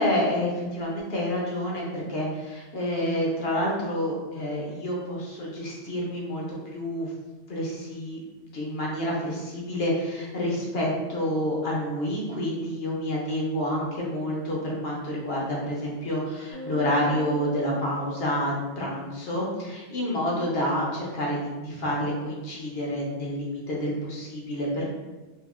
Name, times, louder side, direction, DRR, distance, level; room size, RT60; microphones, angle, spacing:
voice 1, 0.0-7.1 7.5-8.2 8.5-24.9, equal, 65° left, -4 dB, 0.9 m, -28 dB
sound 1, 16.5-19.0, left 1 dB, 35° right, 0.7 m, -41 dB
2.7 x 2.4 x 2.4 m, 1.2 s
omnidirectional pair, 1.2 m